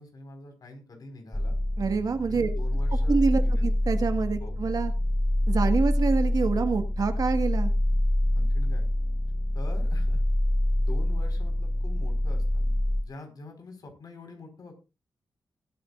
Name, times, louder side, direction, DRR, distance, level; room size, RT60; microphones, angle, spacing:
voice 1, 0.0-1.6 2.3-3.1 3.4-3.7 4.4-4.6 8.3-8.9 9.5-10.2 10.8-12.6 13.0-14.7, left 2 dB, 60° left, 4 dB, 4.9 m, -44 dB
sound 1, 1.3-13.0, left 1 dB, 15° left, 1.0 m, -26 dB
voice 2, 1.8-2.5 3.1-4.9 5.5-7.7, right 5 dB, 55° right, 7 dB, 1.7 m, -26 dB
20.0 x 9.3 x 2.5 m, 0.28 s
cardioid pair, 85°, 7 cm